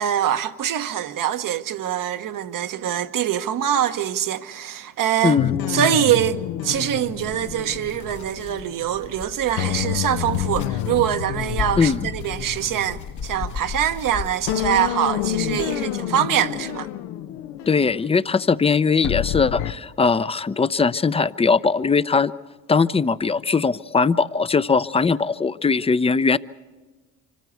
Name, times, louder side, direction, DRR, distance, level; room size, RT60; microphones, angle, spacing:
voice 1, 0.0-5.4 5.7-16.9, right 10 dB, 60° right, 1.1 m, -24 dB
voice 2, 5.2-5.6 11.8-12.1 17.7-22.3 22.7-26.4, left 5 dB, 15° left, 0.6 m, -20 dB
sound 1, 5.4-9.1 9.6-14.1 14.5-19.7, left 12 dB, 80° left, 0.7 m, -29 dB
sound 2, 6.7-16.0, left 7 dB, 50° left, 1.1 m, -36 dB
25.5 x 14.0 x 8.2 m
hypercardioid pair, 55°, 37 cm